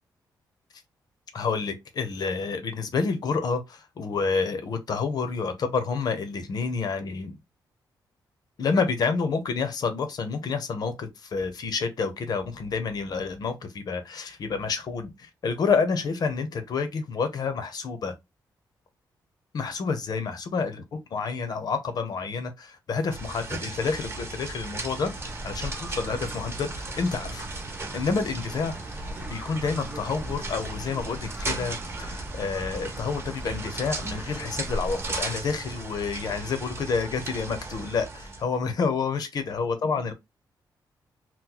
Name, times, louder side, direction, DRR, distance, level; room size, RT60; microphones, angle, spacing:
voice 1, 1.3-7.3 8.6-18.1 19.5-25.1 25.4-27.5 27.9-40.1, left 5 dB, 55° left, 0.7 m, -29 dB
sound 1, 23.1-38.4, right 2 dB, 35° right, 0.9 m, -36 dB
sound 2, 25.0-35.2, right 1 dB, 15° right, 0.5 m, -39 dB
2.9 x 2.1 x 3.7 m
cardioid pair, 115°, 8 cm